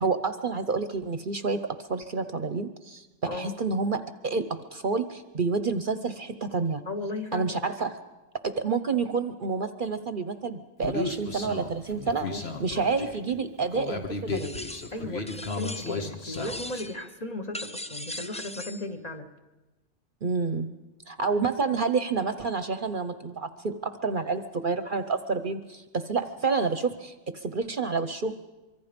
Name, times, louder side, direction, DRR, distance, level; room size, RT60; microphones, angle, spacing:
voice 1, 0.0-6.8 7.3-7.9 8.4-14.5 20.2-20.7 21.1-28.3, right 4 dB, 50° right, 10 dB, 0.9 m, -29 dB
voice 2, 3.3-3.6 6.9-7.6 12.1-12.4 14.3-14.4 14.9-19.3, left 2 dB, 35° left, 4 dB, 1.4 m, -36 dB
Human voice, 10.8-16.8, left 3 dB, 60° left, 1.9 m, -34 dB
sound 1, 14.3-15.0 15.3-16.1 16.3-17.0 17.5-18.9, left 1 dB, 10° left, 0.3 m, -39 dB
24.5 x 23.5 x 5.2 m, 1.1 s
omnidirectional pair, 1.2 m